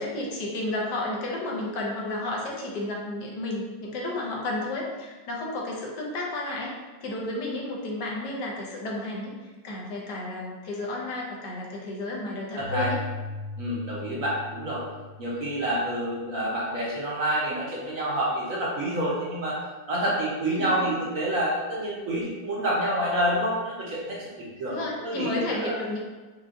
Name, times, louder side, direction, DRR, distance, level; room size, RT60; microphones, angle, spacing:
voice 1, 0.0-13.0 20.5-20.8 24.7-26.0, left 2 dB, 70° left, -2 dB, 1.4 m, -32 dB
voice 2, 12.5-12.9 13.6-14.8 15.2-19.6 19.9-25.8, right 1 dB, 55° right, -5 dB, 1.1 m, -28 dB
Keyboard (musical), 12.6-16.1, left 2 dB, 85° right, 1.8 m, -38 dB
5.0 x 2.4 x 3.7 m, 1.3 s
omnidirectional pair, 2.0 m